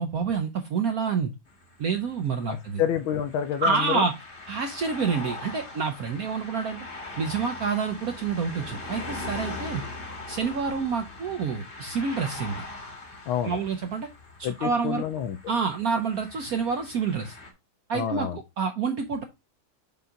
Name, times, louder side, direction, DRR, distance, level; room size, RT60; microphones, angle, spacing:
voice 1, 0.0-1.3 1.8-2.8 3.6-4.1 4.5-6.8 7.2-9.8 10.3-12.7 13.4-14.1 14.4-15.0 15.5-17.4 17.9-19.2, right 5 dB, 65° right, 0.9 m, -28 dB
sound 1, 1.5-17.5, left 2 dB, 30° left, 1.4 m, -41 dB
voice 2, 2.4-4.0 13.3-13.6 14.4-15.4 17.9-18.4, left 9 dB, 80° left, 1.4 m, -28 dB
5.7 x 5.5 x 3.6 m
omnidirectional pair, 2.3 m